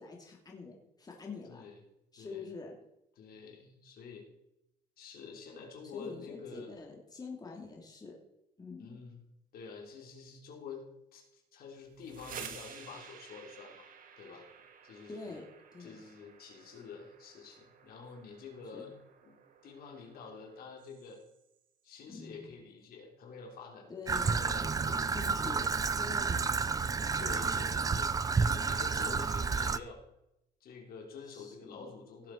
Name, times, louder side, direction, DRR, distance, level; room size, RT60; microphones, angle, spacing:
voice 1, 0.0-1.6 2.1-2.8 5.9-8.2 8.6-9.0 15.1-15.5 15.7-16.0 18.7-18.9 22.1-22.5 23.9-24.3 25.1-25.7 26.0-26.7 27.4-27.6 28.8-29.1 31.3-31.9, left 4 dB, 25° left, -1 dB, 3.0 m, -46 dB
voice 2, 1.5-1.8 2.2-2.5 3.2-4.3 5.0-6.7 8.8-9.2 9.5-10.8 11.1-13.9 14.2-14.5 14.8-15.4 15.8-18.9 19.2-19.4 19.6-21.2 21.8-25.5 27.0-30.0 30.6-32.3, left 5 dB, 60° left, 1 dB, 3.6 m, -48 dB
sound 1, 11.8-21.6, right 7 dB, 55° right, 1.8 m, -52 dB
Traffic noise roadway noise / Trickle dribble, 24.1-29.8, right 5 dB, 20° right, 0.5 m, -30 dB
17.5 x 7.5 x 4.7 m, 0.84 s
cardioid pair, 110°, 17 cm